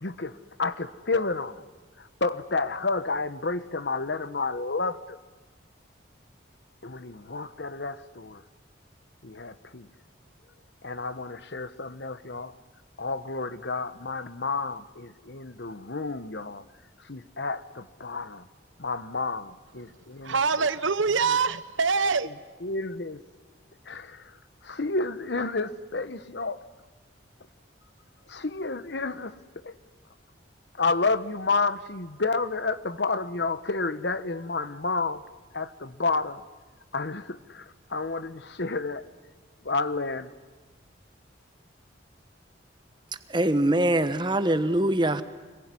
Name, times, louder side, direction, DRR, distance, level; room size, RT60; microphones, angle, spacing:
voice 1, 0.0-1.6 2.0-5.2 6.8-8.4 9.2-9.9 10.8-12.5 13.0-16.6 17.0-18.5 18.8-20.7 21.2-21.4 22.2-23.2 23.8-24.4 24.6-26.6 28.3-29.7 30.8-35.2 35.5-36.4 36.9-39.0 39.6-40.3, left 3 dB, 60° left, 14 dB, 1.1 m, -30 dB
voice 2, 20.2-22.3, right 5 dB, 85° right, 14 dB, 1.1 m, -24 dB
voice 3, 43.3-45.2, right 1 dB, 25° right, 11 dB, 1.2 m, -23 dB
25.5 x 22.0 x 9.8 m, 1.3 s
head